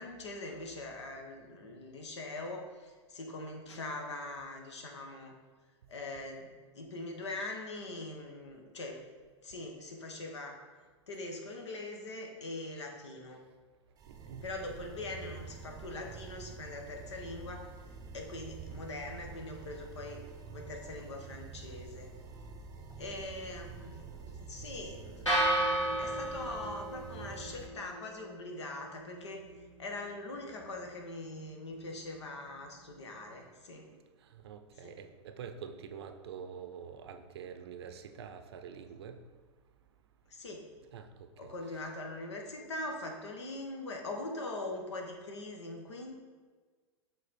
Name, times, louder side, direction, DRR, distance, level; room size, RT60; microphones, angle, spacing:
voice 1, 0.0-5.3 5.9-9.0 9.4-10.6 11.1-13.4 14.4-17.7 18.1-20.2 20.5-22.1 23.0-25.4 25.9-29.4 29.8-33.9 34.8-34.9 40.3-40.6 41.4-46.2, left 2 dB, 70° left, 2 dB, 1.2 m, -42 dB
sound 1, 14.0-27.7, right 5 dB, 25° right, 0.7 m, -48 dB
voice 2, 14.1-14.5 33.9-39.2 40.9-41.9, right 7 dB, 60° right, 8 dB, 0.6 m, -47 dB
sound 2, 25.3-33.4, right 1 dB, 90° left, 1.7 m, -36 dB
7.4 x 4.0 x 4.3 m, 1.4 s
figure-of-eight pair, 95°, 15 cm